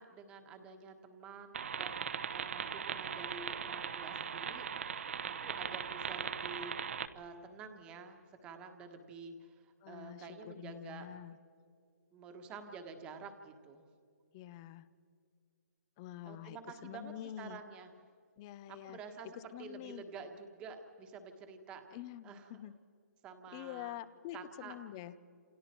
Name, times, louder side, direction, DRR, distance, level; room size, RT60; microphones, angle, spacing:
voice 1, 0.0-6.7 7.1-11.1 12.1-13.8 16.2-17.9 18.7-21.9 22.2-22.6 23.2-23.9 24.3-24.7, right 5 dB, 10° right, 6 dB, 1.5 m, -50 dB
sound 1, 1.5-7.1, right 7 dB, 50° right, 1.2 m, -39 dB
voice 2, 9.8-11.4 14.3-14.9 16.0-16.6 16.8-17.6 18.4-19.0 19.3-20.0 21.9-22.7 23.5-25.1, left 13 dB, 15° left, 16 dB, 0.6 m, -46 dB
29.0 x 28.0 x 4.5 m, 2.3 s
hypercardioid pair, 175°, 9 cm